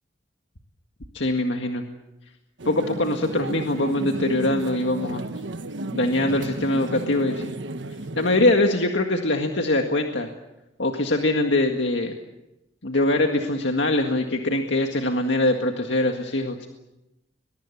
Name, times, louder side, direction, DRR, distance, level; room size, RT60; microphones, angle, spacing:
voice 1, 1.1-1.8 2.7-5.2 5.9-7.5 8.2-10.3 10.8-12.2 12.8-16.7, left 2 dB, 80° left, 4 dB, 1.9 m, -23 dB
sound 1, 2.6-8.6, right 2 dB, 85° right, 1.3 m, -33 dB
22.5 x 22.0 x 8.5 m, 0.94 s
head